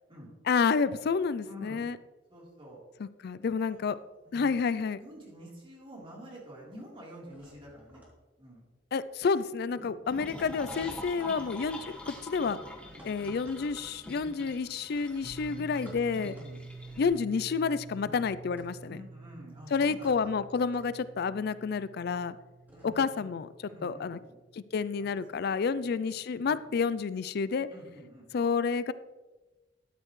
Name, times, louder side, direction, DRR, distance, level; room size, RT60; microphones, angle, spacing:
voice 1, 0.5-2.0 3.0-4.0 4.3-5.0 8.9-11.8 12.1-12.6 13.0-16.3 17.0-19.0 19.7-22.4 22.8-24.2 24.6-27.7 28.3-28.9, left 5 dB, 60° left, 15 dB, 0.4 m, -29 dB
voice 2, 1.5-1.9 2.3-2.8 3.4-4.0 4.2-4.7 5.0-8.0 8.4-8.6 9.8-9.9 10.3-10.6 11.2-11.5 12.8-13.4 14.1-14.6 15.4-15.6 16.1-16.6 18.0-18.2 18.9-20.3 22.7-23.3 23.6-24.4 25.0-26.1 26.4-26.8 27.7-28.3, equal, 30° right, -4 dB, 3.6 m, -49 dB
sound 1, 4.0-5.0 5.3-6.0 6.2-23.3, equal, 10° right, 2.9 m, -57 dB
sound 2, 10.1-17.1, left 1 dB, 5° left, 1.8 m, -45 dB
sound 3, 15.2-25.8, right 3 dB, 45° right, 0.5 m, -49 dB
13.0 x 8.6 x 3.2 m, 1.2 s
head